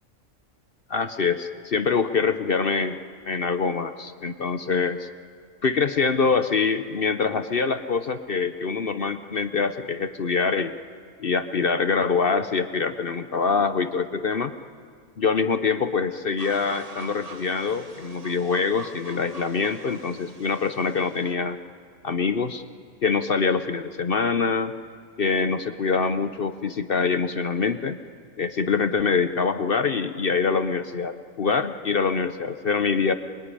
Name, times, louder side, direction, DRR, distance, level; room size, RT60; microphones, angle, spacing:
voice 1, 0.9-3.0 3.3-5.1 5.6-10.7 11.2-14.5 15.2-21.6 22.0-22.6 23.0-24.7 25.2-28.0 28.4-33.1, left 5 dB, 50° left, 10 dB, 0.9 m, -24 dB
sound 1, 16.4-21.3, right 3 dB, 30° right, 1.6 m, -44 dB
26.0 x 22.0 x 9.9 m, 2.1 s
omnidirectional pair, 1.4 m